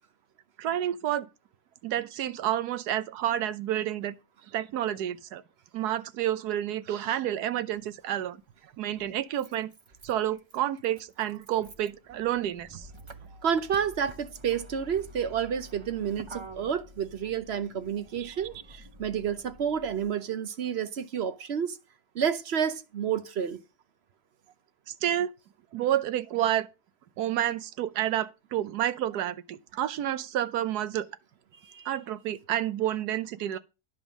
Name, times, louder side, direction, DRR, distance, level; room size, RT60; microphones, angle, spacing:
voice 1, 0.6-1.3 1.8-4.1 4.5-5.4 5.7-8.4 8.8-9.7 10.0-12.9 18.2-18.3 24.9-25.3 25.7-26.7 27.2-31.1 31.9-33.6, right 11 dB, 75° right, 1.3 m, -29 dB
Motor vehicle (road), 7.7-7.8 9.0-20.1, right 1 dB, 35° right, 0.5 m, -49 dB
voice 2, 13.4-18.5 19.0-21.8 22.1-23.6 31.6-31.9, right 8 dB, 55° right, 0.8 m, -30 dB
10.0 x 5.3 x 6.1 m
omnidirectional pair, 1.7 m